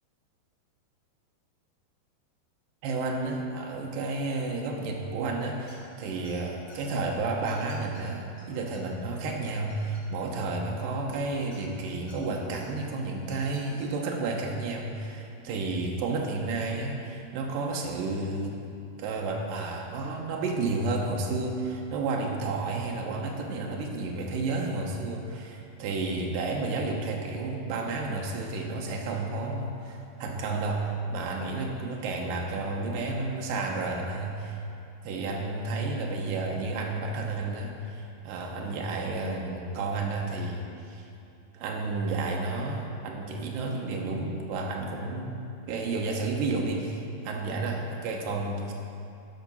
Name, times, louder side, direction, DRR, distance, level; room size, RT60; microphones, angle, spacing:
voice 1, 2.8-18.5 19.0-34.6 35.0-41.1 41.5-45.4 45.7-48.7, right 3 dB, 70° right, 0 dB, 2.2 m, -31 dB
sound 1, 5.7-5.9 6.2-6.8 7.4-8.0 8.4-8.5 8.7-8.8 9.1-10.3 11.5-12.2 12.5-12.6 13.2-13.8, left 2 dB, 40° left, 1.6 m, -53 dB
12.0 x 5.8 x 5.5 m, 2.6 s
omnidirectional pair, 4.8 m